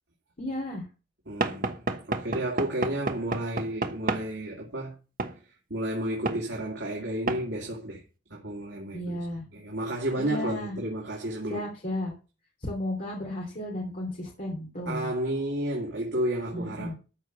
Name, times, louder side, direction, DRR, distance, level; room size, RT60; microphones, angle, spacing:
voice 1, 0.4-0.9 8.9-9.4 10.1-10.8 11.5-12.1 12.6-15.1 16.5-16.9, left 1 dB, 45° left, 2.9 m, -33 dB
voice 2, 1.3-4.9 5.7-8.0 8.3-9.2 9.5-11.7 14.9-16.9, right 1 dB, 75° right, 2.7 m, -32 dB
Knock / Wood, 1.4-4.3 5.2-5.4 6.3-6.4 7.3-7.5, right 3 dB, 50° right, 1.1 m, -30 dB
13.5 x 4.6 x 6.6 m
head